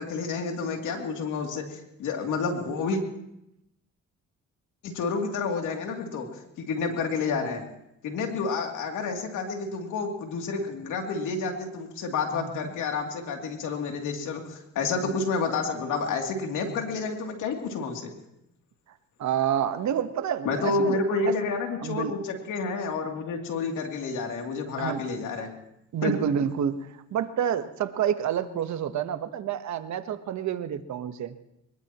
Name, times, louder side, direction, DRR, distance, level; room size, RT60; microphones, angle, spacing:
voice 1, 0.0-3.0 4.8-6.3 6.6-7.6 8.0-18.1 20.4-25.5 26.0-26.1, left 4 dB, 85° left, 2 dB, 3.0 m, -29 dB
voice 2, 12.3-12.7 15.0-15.1 19.2-21.0 21.2-21.3 21.8-22.1 24.8-25.0 25.9-31.3, right 9 dB, 65° right, 10 dB, 1.3 m, -28 dB
23.0 x 21.0 x 3.0 m, 0.83 s
cardioid pair, 90°, 30 cm